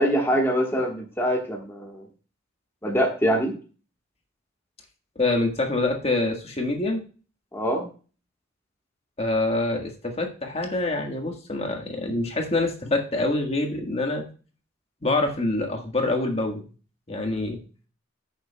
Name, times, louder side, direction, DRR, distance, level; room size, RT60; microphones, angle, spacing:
voice 1, 0.0-2.1 2.8-3.5 7.5-7.9, equal, 15° left, 0 dB, 1.4 m, -24 dB
voice 2, 5.1-7.0 9.2-14.2 15.0-16.6 17.1-17.6, left 2 dB, 30° left, 2 dB, 1.5 m, -25 dB
14.5 x 6.9 x 2.3 m, 0.37 s
head